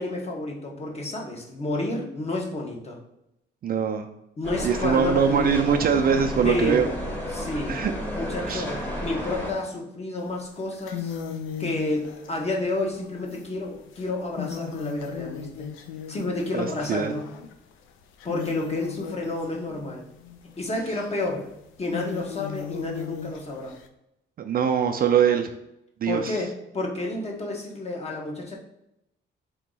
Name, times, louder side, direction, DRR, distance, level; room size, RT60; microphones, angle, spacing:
voice 1, 0.0-3.0 4.4-5.5 6.4-6.8 7.3-7.8 8.1-11.2 11.6-15.7 16.1-17.3 18.2-20.0 20.6-21.5 21.8-23.7 26.1-28.5, left 2 dB, 30° left, 0 dB, 1.1 m, -30 dB
voice 2, 3.6-4.1 4.6-6.9 7.7-7.9 8.5-8.7 16.5-17.1 24.4-25.5 26.0-26.3, right 7 dB, 50° right, 5 dB, 0.4 m, -22 dB
sound 1, 4.4-9.5, equal, 10° left, 1.1 m, -32 dB
sound 2, 10.3-10.4 10.7-17.7 18.0-23.9, left 8 dB, 90° left, 0.5 m, -37 dB
3.8 x 2.8 x 3.8 m, 0.84 s
cardioid pair, 90°, 20 cm